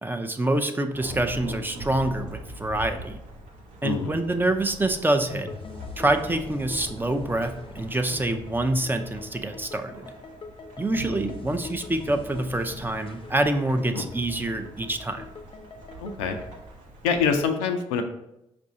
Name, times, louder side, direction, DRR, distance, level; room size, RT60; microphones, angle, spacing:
voice 1, 0.0-3.2 3.8-5.5 6.0-10.1 10.8-15.3, right 1 dB, 15° right, 7 dB, 0.5 m, -26 dB
Thunderstorm / Rain, 0.9-17.5, right 1 dB, 75° right, 0.8 m, -43 dB
voice 2, 3.8-4.2 13.9-14.0 16.0-16.4 17.0-18.0, left 5 dB, 90° left, 5 dB, 0.4 m, -25 dB
sound 1, 5.3-16.6, left 4 dB, 40° left, 0.5 m, -42 dB
4.7 x 2.5 x 4.1 m, 0.86 s
hypercardioid pair, 45°, 14 cm